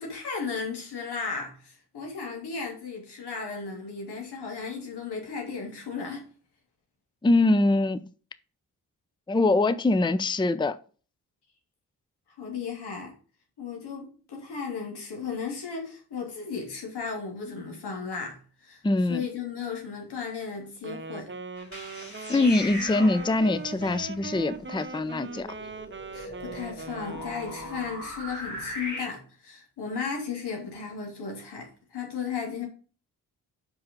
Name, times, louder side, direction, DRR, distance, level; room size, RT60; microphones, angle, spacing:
voice 1, 0.0-6.3 12.4-13.1 13.6-18.8 19.1-21.3 26.1-32.7, left 5 dB, 85° left, 2.9 m, -35 dB
voice 2, 7.2-8.1 9.3-10.8 18.8-19.2 22.3-25.5, left 2 dB, 10° left, 0.6 m, -23 dB
Wind instrument woodwind instrument, 20.8-28.0, right 4 dB, 30° right, 1.0 m, -40 dB
sound 1, 21.6-29.0, left 1 dB, 45° left, 3.4 m, -39 dB
5.6 x 5.5 x 5.3 m
supercardioid pair, 45°, 39 cm